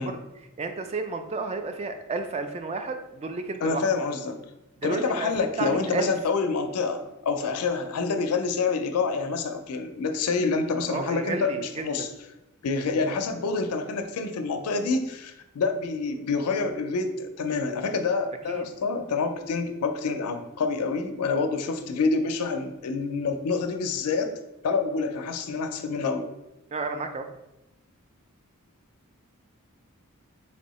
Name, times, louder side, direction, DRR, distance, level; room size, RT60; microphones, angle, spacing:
voice 1, 0.0-3.9 4.8-5.3 5.6-6.1 10.9-12.1 18.5-18.7 26.7-27.3, right 4 dB, 30° right, 6 dB, 0.3 m, -32 dB
voice 2, 3.6-4.4 4.8-12.1 12.6-24.3 24.6-26.2, left 4 dB, 80° left, 7 dB, 0.4 m, -27 dB
3.3 x 2.7 x 4.1 m, 0.95 s
head